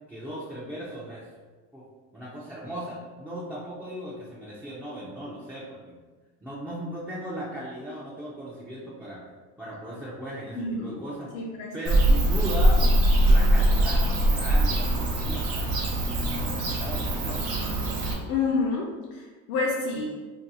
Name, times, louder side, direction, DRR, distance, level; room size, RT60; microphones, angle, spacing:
voice 1, 0.1-1.3 1.7-1.8 2.1-6.0 6.4-9.2 9.6-11.3 11.7-13.0 13.2-15.6 16.0-17.5, equal, 5° right, -8 dB, 0.3 m, -37 dB
voice 2, 10.5-11.0 11.3-11.7 18.3-18.8 19.1-20.1, left 4 dB, 70° left, -2 dB, 0.6 m, -28 dB
Bird / Cricket, 11.9-18.1, right 1 dB, 45° right, 0.9 m, -22 dB
2.6 x 2.3 x 3.9 m, 1.3 s
cardioid pair, 140°, 32 cm